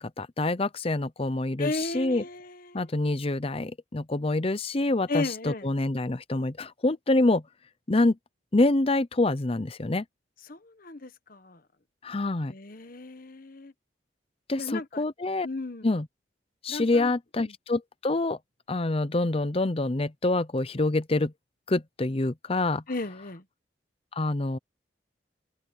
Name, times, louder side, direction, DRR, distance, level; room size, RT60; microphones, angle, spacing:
voice 1, 0.0-2.2 2.7-7.4 7.9-8.2 8.5-10.0 12.0-12.5 14.5-15.5 15.8-16.1 16.6-18.4 18.7-21.3 21.7-22.8 24.1-24.6, left 2 dB, 30° left, 0.6 m, -26 dB
voice 2, 1.6-2.8 5.1-5.7 10.5-11.6 12.5-13.7 14.6-15.0 15.4-15.9 16.7-17.1 17.4-17.5 22.9-23.4, left 2 dB, 45° left, 1.2 m, -35 dB
open air
head